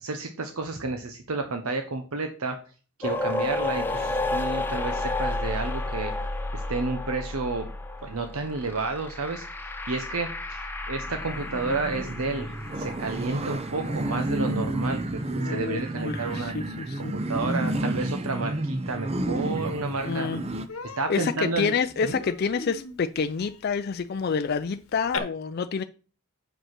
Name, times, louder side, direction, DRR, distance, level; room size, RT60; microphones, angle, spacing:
voice 1, 0.0-2.6 3.0-6.1 6.5-7.7 8.0-9.4 9.9-16.5 17.0-20.3 21.0-21.8, right 3 dB, 80° right, 1.0 m, -31 dB
sound 1, 3.0-14.1, left 2 dB, 10° left, 0.7 m, -32 dB
sound 2, 11.0-20.7, right 1 dB, 30° right, 0.7 m, -31 dB
voice 2, 15.4-17.1 20.0-20.4 21.1-25.8, left 5 dB, 45° left, 0.4 m, -28 dB
Human voice, 19.7-19.8 20.1-20.3 20.7-25.2, left 4 dB, 75° left, 1.1 m, -39 dB
7.8 x 5.3 x 5.9 m
head